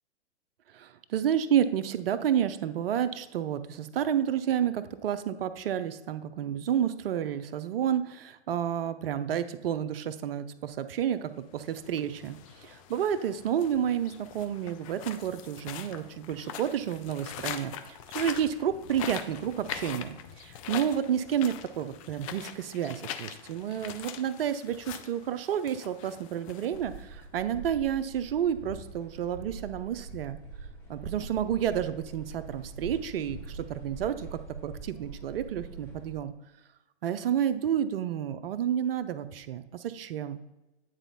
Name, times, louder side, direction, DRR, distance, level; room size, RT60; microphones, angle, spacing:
voice 1, 0.7-17.7 18.1-30.4 30.9-36.3 37.0-40.4, right 9 dB, 60° right, 11 dB, 0.6 m, -30 dB
sound 1, 11.5-27.2, left 9 dB, 30° left, 0.5 m, -42 dB
sound 2, 26.7-36.2, right 3 dB, 5° left, 1.4 m, -44 dB
9.0 x 4.1 x 4.1 m, 1.0 s
hypercardioid pair, 120°, 33 cm